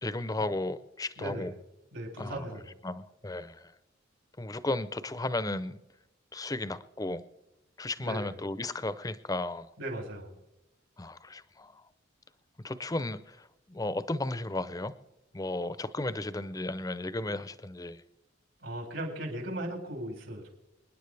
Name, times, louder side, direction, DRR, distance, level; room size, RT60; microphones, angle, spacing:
voice 1, 0.0-1.5 2.2-2.5 2.8-3.7 4.4-5.8 6.3-7.2 7.8-9.7 11.0-11.8 12.6-14.9 15.3-18.0, left 2 dB, 20° left, 14 dB, 0.6 m, -34 dB
voice 2, 1.2-1.5 1.9-2.7 8.0-8.3 9.8-10.3 18.6-20.5, right 1 dB, 75° right, 2 dB, 4.5 m, -37 dB
27.5 x 10.0 x 3.4 m, 0.94 s
head